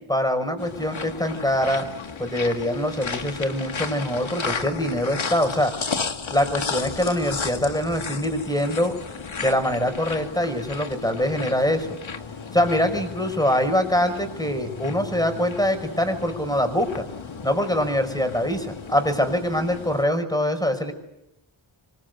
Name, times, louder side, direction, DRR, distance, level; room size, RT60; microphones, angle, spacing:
voice 1, 0.0-1.9 2.2-5.7 6.3-9.0 9.4-11.9 12.5-17.0 17.4-20.9, left 1 dB, 10° left, 6 dB, 5.5 m, -24 dB
sound 1, 0.6-20.0, left 5 dB, 70° left, 2.1 m, -34 dB
25.0 x 23.5 x 8.1 m, 0.86 s
wide cardioid pair, 95°, 49 cm